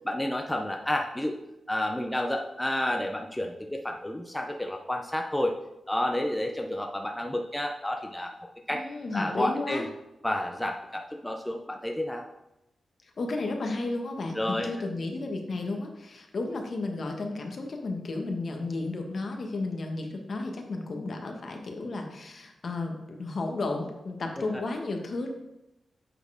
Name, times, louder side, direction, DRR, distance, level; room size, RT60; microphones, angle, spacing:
voice 1, 0.0-1.4 1.7-5.5 5.9-8.3 8.7-8.8 9.1-9.9 10.2-12.3 14.3-14.7, left 1 dB, 10° left, 2 dB, 0.5 m, -30 dB
voice 2, 8.7-9.8 13.2-25.3, left 2 dB, 55° left, 3 dB, 1.2 m, -33 dB
8.0 x 4.3 x 4.8 m, 0.91 s
wide cardioid pair, 105°, 0 cm